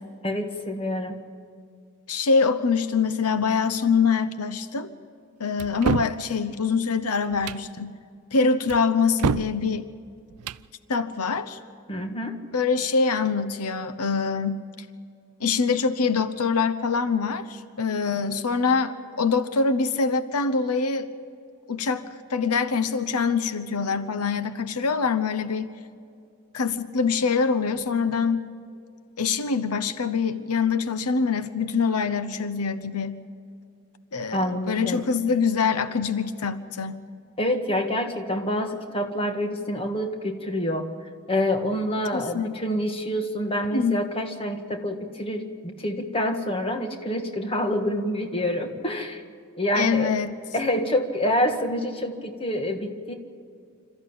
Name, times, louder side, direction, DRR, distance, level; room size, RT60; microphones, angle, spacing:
voice 1, 0.2-1.2 11.9-12.4 34.3-35.0 37.4-40.9 41.3-49.2 49.6-50.1 50.5-53.1, left 1 dB, 25° left, 5 dB, 1.6 m, -27 dB
voice 2, 2.1-4.9 5.4-8.0 8.3-9.8 10.9-11.6 12.5-14.6 15.4-21.1 21.7-22.0 22.3-25.7 26.5-28.5 29.2-33.2 34.1-37.0 42.1-42.5 43.7-44.0 49.7-50.3, left 5 dB, 90° left, 12 dB, 0.9 m, -24 dB
sound 1, 5.6-6.2 7.3-7.7 8.7-9.6 10.3-10.7, right 6 dB, 85° right, 0.5 m, -27 dB
27.0 x 14.0 x 8.9 m, 2.4 s
head